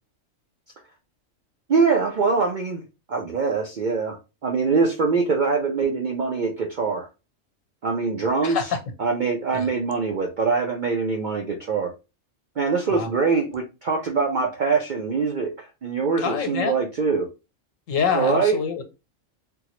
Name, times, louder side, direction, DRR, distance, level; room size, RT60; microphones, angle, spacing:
voice 1, 1.7-2.8 3.1-4.2 4.4-7.1 7.8-8.7 9.0-11.9 12.6-17.3 18.1-18.6, right 4 dB, 55° right, 2 dB, 0.5 m, -23 dB
voice 2, 8.4-8.8 9.5-9.7 12.9-13.1 16.2-16.8 17.9-18.8, left 6 dB, 80° left, 7 dB, 1.1 m, -25 dB
3.7 x 2.2 x 2.9 m, 0.28 s
omnidirectional pair, 1.3 m